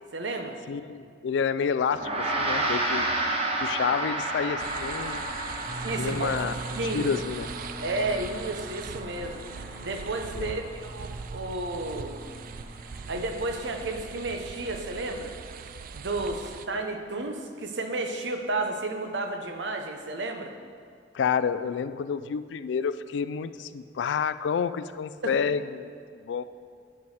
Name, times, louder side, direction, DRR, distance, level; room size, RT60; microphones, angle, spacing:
voice 1, 0.1-0.6 5.8-6.5 6.8-7.1 7.8-9.4 9.8-12.3 13.1-15.3 15.9-20.5 25.2-25.3, right 2 dB, 80° right, 5 dB, 0.8 m, -32 dB
voice 2, 0.7-3.2 3.6-5.3 6.0-6.5 6.8-7.5 10.3-10.6 21.1-26.4, left 6 dB, 80° left, 14 dB, 0.3 m, -29 dB
Gong, 1.9-11.5, right 2 dB, 35° right, 0.9 m, -32 dB
sound 1, 4.6-16.7, right 6 dB, 50° right, 0.3 m, -41 dB
sound 2, 5.6-15.2, right 1 dB, 30° left, 2.0 m, -43 dB
8.5 x 4.7 x 6.4 m, 2.2 s
head